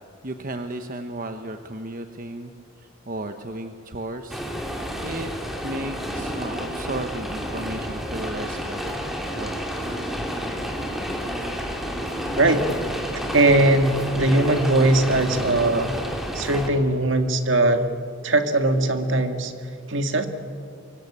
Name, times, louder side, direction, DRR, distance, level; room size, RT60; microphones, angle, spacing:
voice 1, 0.2-2.5 2.8-5.3 5.6-9.6, right 1 dB, 40° right, 7 dB, 1.1 m, -34 dB
sound 1, 4.3-16.7, equal, ahead, 3.1 m, -30 dB
voice 2, 12.4-12.7 13.3-16.1 16.3-17.9 18.2-19.5 19.9-20.3, right 2 dB, 60° right, 7 dB, 2.0 m, -20 dB
25.0 x 23.5 x 8.7 m, 2.3 s
head